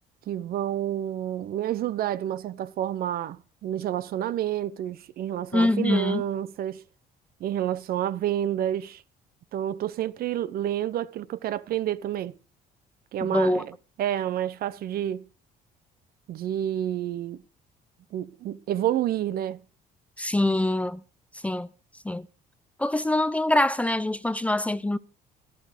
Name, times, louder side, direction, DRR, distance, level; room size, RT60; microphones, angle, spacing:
voice 1, 0.3-6.8 7.4-9.0 9.5-12.4 13.1-13.7 14.0-15.2 16.3-17.4 18.1-19.6, right 11 dB, 60° right, 0.8 m, -29 dB
voice 2, 5.5-6.2 13.2-13.6 20.2-21.0 21.4-21.7 22.0-22.3 22.8-25.0, left 1 dB, 10° left, 0.5 m, -24 dB
12.5 x 12.0 x 5.0 m
cardioid pair, 110°, 17 cm